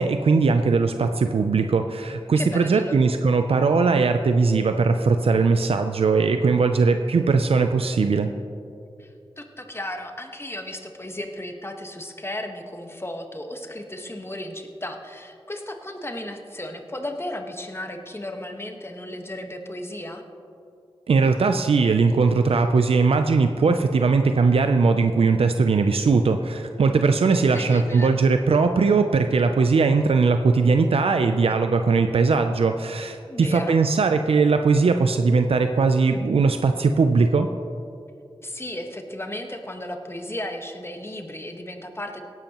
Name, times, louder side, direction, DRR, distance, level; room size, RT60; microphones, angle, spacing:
voice 1, 0.0-8.3 21.1-37.5, right 4 dB, 80° right, 7 dB, 0.5 m, -20 dB
voice 2, 2.3-3.0 9.0-20.2 27.3-28.1 33.3-33.8 38.4-42.2, left 1 dB, 25° left, 4 dB, 1.4 m, -35 dB
17.5 x 10.5 x 3.0 m, 2.5 s
cardioid pair, 45°, 10 cm